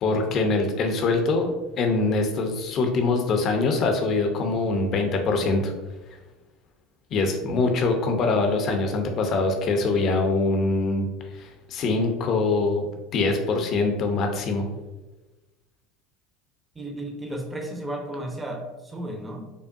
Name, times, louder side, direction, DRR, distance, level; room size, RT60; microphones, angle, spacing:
voice 1, 0.0-5.7 7.1-11.1 11.3-12.9 13.1-14.7, left 3 dB, 50° left, 4 dB, 0.7 m, -23 dB
voice 2, 16.7-19.5, right 1 dB, 15° right, 2 dB, 0.8 m, -34 dB
5.3 x 2.2 x 2.6 m, 1.1 s
hypercardioid pair, 80°, 0 cm